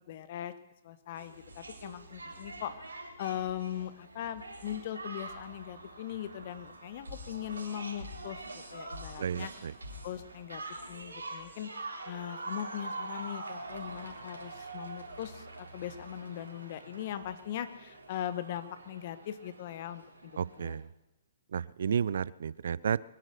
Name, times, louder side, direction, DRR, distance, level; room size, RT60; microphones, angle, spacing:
voice 1, 0.1-0.5 0.8-2.9 3.2-9.5 10.0-10.6 10.9-11.7 12.0-20.8, left 11 dB, 45° left, 13 dB, 1.2 m, -40 dB
sound 1, 1.2-20.7, right 2 dB, 80° right, 3.5 m, -45 dB
voice 2, 9.2-9.7 20.4-20.9 21.5-23.0, right 7 dB, 65° right, 21 dB, 0.4 m, -32 dB
22.5 x 9.7 x 6.7 m, 0.97 s
figure-of-eight pair, 120°, 0 cm